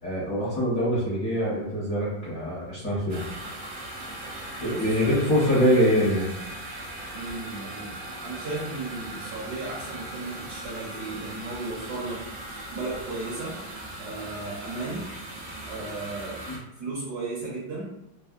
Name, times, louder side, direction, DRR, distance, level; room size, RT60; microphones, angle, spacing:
voice 1, 0.0-3.2 4.6-6.3 16.5-16.6, equal, 50° left, -9 dB, 1.1 m, -24 dB
sound 1, 3.1-16.6, right 1 dB, 85° right, 0.7 m, -39 dB
voice 2, 4.6-5.1 7.1-12.2 12.7-13.6 14.0-15.0 15.6-16.4 16.8-17.9, right 3 dB, 65° right, -6 dB, 1.1 m, -35 dB
3.5 x 2.1 x 2.4 m, 0.86 s
omnidirectional pair, 2.3 m